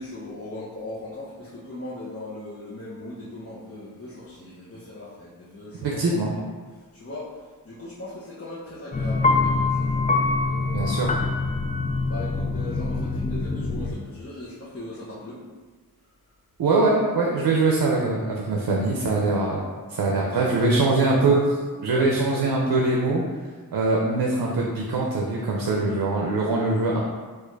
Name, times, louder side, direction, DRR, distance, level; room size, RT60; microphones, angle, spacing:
voice 1, 0.0-6.4 6.9-10.0 10.4-11.1 12.0-15.4 20.3-21.2 21.8-22.1 26.8-27.0, left 2 dB, 35° left, -10 dB, 0.9 m, -39 dB
voice 2, 5.8-6.3 10.7-11.1 16.6-19.6 19.9-21.4 21.8-23.2 23.7-27.0, right 3 dB, 85° right, -1 dB, 0.6 m, -22 dB
sound 1, 8.9-13.9, left 3 dB, 20° left, 0.3 m, -24 dB
4.6 x 2.5 x 4.6 m, 1.4 s
wide cardioid pair, 110°, 38 cm